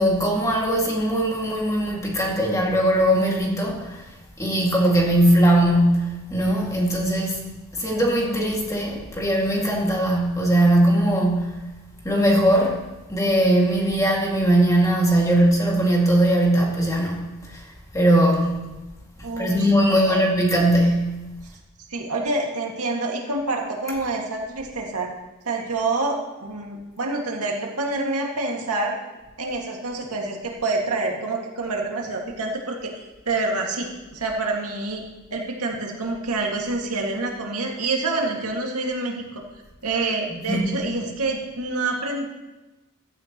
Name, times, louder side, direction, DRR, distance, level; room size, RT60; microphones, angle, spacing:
voice 1, 0.0-4.0 4.4-7.4 7.7-11.6 12.0-12.8 13.1-17.6 17.9-18.5 19.4-21.1 23.9-24.0 40.3-40.8, right 1 dB, 15° left, -2 dB, 2.2 m, -20 dB
voice 2, 19.2-20.2 21.9-25.1 25.5-28.9 29.4-32.9 33.3-35.0 35.3-39.4 39.8-42.2, right 3 dB, 90° right, 0 dB, 2.1 m, -27 dB
15.0 x 12.5 x 3.0 m, 1.1 s
head